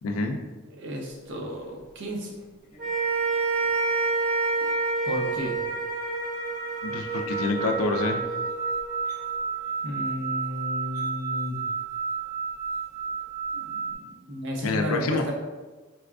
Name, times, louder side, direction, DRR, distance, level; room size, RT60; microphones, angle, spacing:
voice 1, 0.0-0.4 6.8-8.2 14.6-15.2, left 3 dB, 85° left, 4 dB, 0.4 m, -27 dB
voice 2, 0.7-2.4 5.0-5.6 9.8-11.6 13.5-15.3, equal, 60° right, 0 dB, 0.6 m, -33 dB
sound 1, 1.4-1.6 2.6-2.8 3.6-3.7 4.6-4.7 5.7-5.8 5.9-13.9, right 5 dB, 35° left, 0.7 m, -32 dB
sound 2, 2.8-9.2, right 3 dB, 90° right, 1.4 m, -28 dB
4.2 x 2.3 x 2.4 m, 1.2 s
head